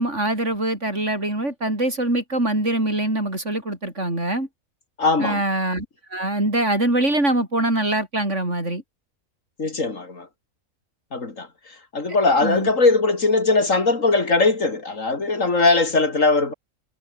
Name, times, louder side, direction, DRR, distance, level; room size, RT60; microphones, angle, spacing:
voice 1, 0.0-4.5 5.2-5.9 6.1-8.8 12.4-12.7, right 1 dB, 55° right, 7.5 m, -23 dB
voice 2, 5.0-5.4 9.6-10.3 11.1-11.5 11.9-16.5, left 3 dB, 65° left, 3.4 m, -20 dB
omnidirectional pair, 1.5 m